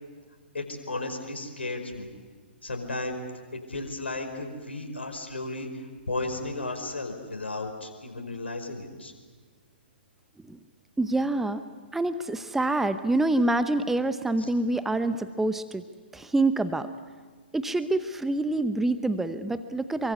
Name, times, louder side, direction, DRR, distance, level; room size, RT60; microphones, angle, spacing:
voice 1, 0.5-2.1 2.6-3.2 3.7-5.7 6.1-9.1, left 2 dB, 80° left, 4 dB, 5.1 m, -34 dB
voice 2, 11.0-11.6 11.9-15.8 16.1-16.9 17.5-20.1, right 2 dB, 5° right, 11 dB, 0.8 m, -26 dB
26.5 x 23.5 x 8.4 m, 1.5 s
figure-of-eight pair, 125°, 6 cm